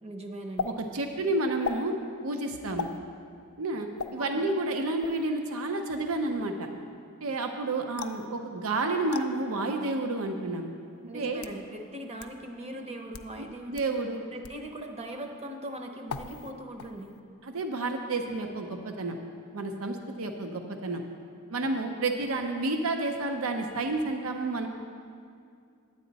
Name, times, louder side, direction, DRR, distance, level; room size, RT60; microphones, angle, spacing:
voice 1, 0.0-0.8 4.2-4.5 11.1-13.8 14.2-17.1, right 1 dB, 30° right, 4 dB, 0.8 m, -40 dB
sound 1, 0.6-0.7 1.6-1.8 2.8-3.0 4.0-4.1 5.0-5.3 8.0-8.3 9.1-9.3 10.2-10.3 11.1-11.6 12.2-12.3 13.0-13.3 13.8-13.9 14.4-14.6 16.1-16.5 16.8-17.2, left 6 dB, 90° left, 0.4 m, -36 dB
voice 2, 0.6-1.9 2.2-2.9 3.6-6.7 7.2-10.7 11.1-11.4 13.4-14.2 17.4-19.2 19.5-21.0 21.5-24.7, right 2 dB, 75° right, 4 dB, 0.6 m, -30 dB
9.4 x 9.4 x 4.0 m, 2.4 s
head